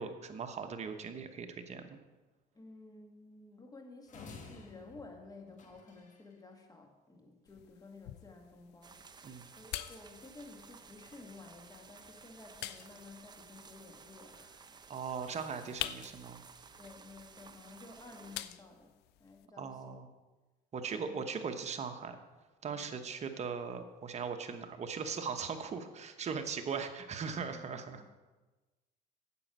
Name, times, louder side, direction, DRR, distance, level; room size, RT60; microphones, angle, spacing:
voice 1, 0.0-2.0 9.2-9.5 14.9-16.4 19.6-20.1 20.7-22.2 22.6-28.0, right 6 dB, 40° right, 6 dB, 1.0 m, -39 dB
voice 2, 2.5-14.6 16.8-18.9 19.2-19.9 20.9-21.3 22.7-22.9 27.3-28.1, left 3 dB, 20° left, 3 dB, 1.8 m, -53 dB
sound 1, 4.1-6.3, left 4 dB, 45° left, 1.4 m, -52 dB
sound 2, 7.4-19.5, left 14 dB, 90° left, 0.5 m, -48 dB
sound 3, 8.8-18.4, right 5 dB, 25° right, 0.7 m, -56 dB
9.6 x 7.8 x 6.1 m, 1.2 s
cardioid pair, 110°, 17 cm